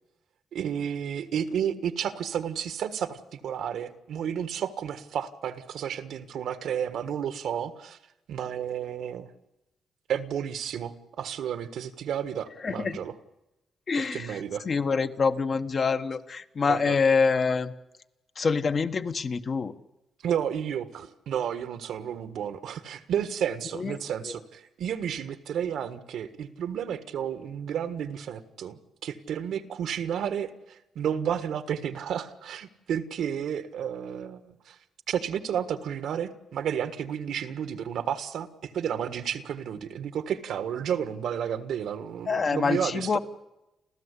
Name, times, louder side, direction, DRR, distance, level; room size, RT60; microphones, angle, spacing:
voice 1, 0.5-8.0 8.3-9.3 10.1-13.1 14.0-14.6 16.7-17.0 20.2-34.8 35.1-43.2, right 8 dB, 80° right, 10 dB, 1.5 m, -32 dB
voice 2, 12.6-13.0 13.9-17.7 18.3-19.7 23.7-24.0 24.2-24.3 42.2-43.2, left 5 dB, 45° left, 9 dB, 1.3 m, -26 dB
29.5 x 14.0 x 8.3 m, 0.95 s
cardioid pair, 100°, 0 cm